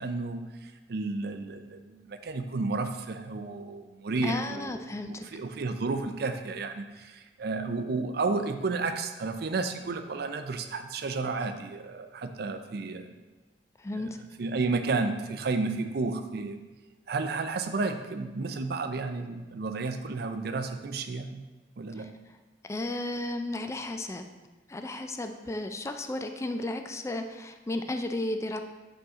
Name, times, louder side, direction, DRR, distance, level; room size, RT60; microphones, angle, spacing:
voice 1, 0.0-13.1 14.0-14.1 14.4-16.6 17.1-21.4 21.8-22.1, right 3 dB, 60° right, 8 dB, 0.5 m, -32 dB
voice 2, 4.2-5.3 13.8-14.2 22.0-22.1 22.6-24.2 24.7-28.6, left 2 dB, 15° left, 6 dB, 0.3 m, -34 dB
5.5 x 5.3 x 3.7 m, 1.2 s
head